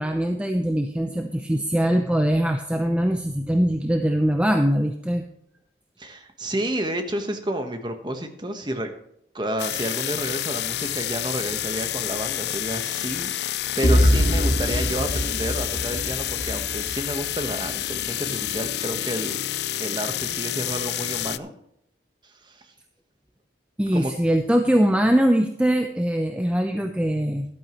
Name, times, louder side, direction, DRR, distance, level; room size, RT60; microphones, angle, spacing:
voice 1, 0.0-5.2 23.8-27.5, equal, 5° right, 4 dB, 0.6 m, -22 dB
voice 2, 6.0-8.9 9.3-19.4 19.8-21.5 22.2-22.6 23.9-24.1, right 1 dB, 25° right, 6 dB, 1.3 m, -30 dB
sound 1, 9.6-21.4, left 13 dB, 65° left, 0.4 m, -29 dB
sound 2, 13.8-17.7, equal, 50° left, 1.4 m, -23 dB
13.5 x 12.0 x 3.1 m, 0.73 s
head